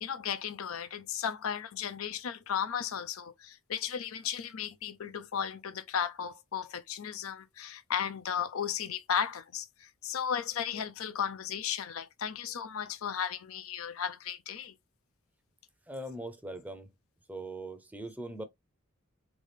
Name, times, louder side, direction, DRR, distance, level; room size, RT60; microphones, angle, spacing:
voice 1, 0.0-14.7, left 8 dB, 80° left, 0.5 m, -35 dB
voice 2, 15.9-16.9 17.3-18.4, right 1 dB, 10° right, 0.6 m, -40 dB
4.0 x 3.5 x 3.4 m
head